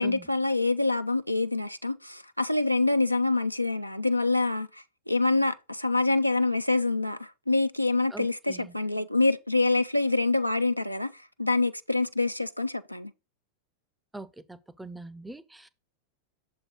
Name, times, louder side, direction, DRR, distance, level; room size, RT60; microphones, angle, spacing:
voice 1, 0.0-13.1, left 3 dB, 90° left, 0.3 m, -26 dB
voice 2, 8.1-8.7 14.1-15.7, right 2 dB, 5° right, 0.5 m, -43 dB
6.6 x 3.8 x 4.4 m
figure-of-eight pair, 90°, 0 cm